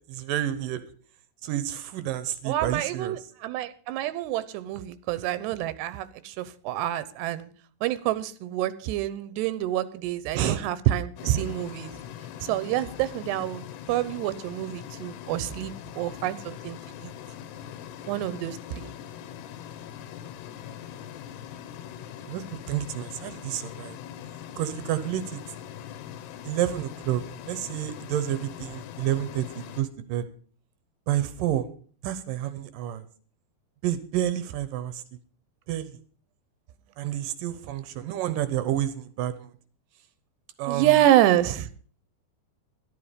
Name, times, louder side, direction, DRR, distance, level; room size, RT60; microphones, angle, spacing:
voice 1, 0.1-0.8 1.4-3.2 10.3-10.7 22.3-24.0 24.6-25.4 26.4-27.2 27.5-30.3 31.1-31.7 32.0-33.1 33.8-35.0 35.7-35.9 37.0-39.5 40.6-41.0, right 12 dB, 70° right, 13 dB, 2.2 m, -29 dB
voice 2, 2.5-7.5 7.8-11.9 12.4-16.8 17.0-17.1 18.1-18.9 40.7-41.7, right 13 dB, 90° right, 16 dB, 3.0 m, -27 dB
sound 1, 11.2-29.8, left 10 dB, 85° left, 3.1 m, -41 dB
13.0 x 12.0 x 5.2 m, 0.43 s
omnidirectional pair, 4.7 m